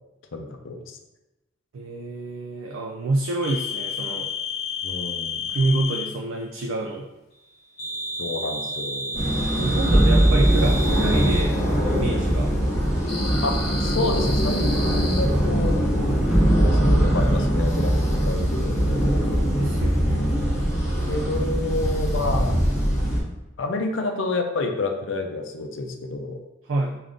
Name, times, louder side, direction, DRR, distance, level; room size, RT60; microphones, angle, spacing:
voice 1, 0.3-1.0 4.8-5.5 8.2-9.3 13.4-15.8 16.8-18.8 20.0-20.5 21.1-22.7 23.6-26.4, left 2 dB, 70° left, 4 dB, 0.5 m, -29 dB
voice 2, 1.7-4.3 5.5-7.1 9.6-12.5 19.6-20.2 26.7-27.0, right 2 dB, 85° right, 1 dB, 0.4 m, -27 dB
sound 1, 3.4-6.1 7.8-11.5 13.1-15.2, left 2 dB, 55° left, 0.8 m, -31 dB
sound 2, 9.1-23.2, equal, 15° left, 1.5 m, -23 dB
sound 3, 9.9-12.1 16.3-19.5, right 1 dB, 10° right, 0.6 m, -22 dB
3.5 x 2.5 x 3.7 m, 1.0 s
head